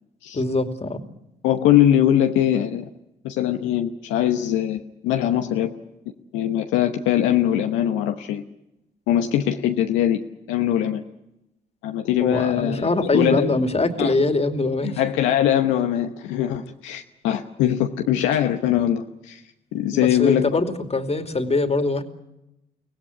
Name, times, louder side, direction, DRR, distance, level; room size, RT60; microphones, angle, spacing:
voice 1, 0.3-1.0 12.2-15.0 19.9-22.0, left 2 dB, 35° left, 7 dB, 2.7 m, -23 dB
voice 2, 1.4-2.9 3.2-5.7 6.3-8.4 9.1-10.2 10.5-11.0 11.8-13.5 14.0-14.1 14.8-19.4 19.7-20.5, left 11 dB, 85° left, 5 dB, 1.0 m, -21 dB
24.0 x 17.0 x 9.8 m, 0.90 s
hypercardioid pair, 45°, 19 cm